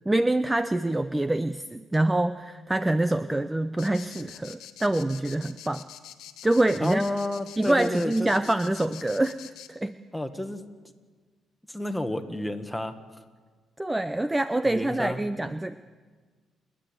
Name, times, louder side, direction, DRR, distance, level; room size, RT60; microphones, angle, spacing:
voice 1, 0.1-5.8 6.4-7.0 7.6-10.0 13.8-15.7, right 1 dB, 15° right, 12 dB, 0.6 m, -25 dB
sound 1, 3.8-9.7, left 11 dB, 90° left, 1.4 m, -45 dB
voice 2, 6.8-8.3 10.1-10.6 11.7-13.0 14.6-15.2, left 1 dB, 5° left, 7 dB, 1.6 m, -30 dB
28.5 x 10.0 x 8.9 m, 1.5 s
cardioid pair, 90°, 0 cm